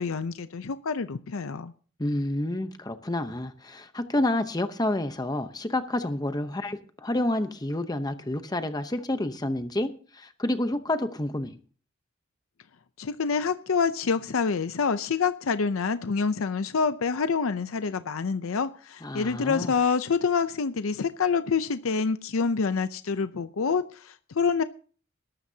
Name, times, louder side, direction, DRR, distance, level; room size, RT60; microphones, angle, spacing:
voice 1, 0.0-1.7 13.0-24.6, left 5 dB, 85° left, 0.6 m, -27 dB
voice 2, 2.0-11.6 19.0-19.7, left 1 dB, 20° left, 0.8 m, -29 dB
20.5 x 12.5 x 2.8 m
head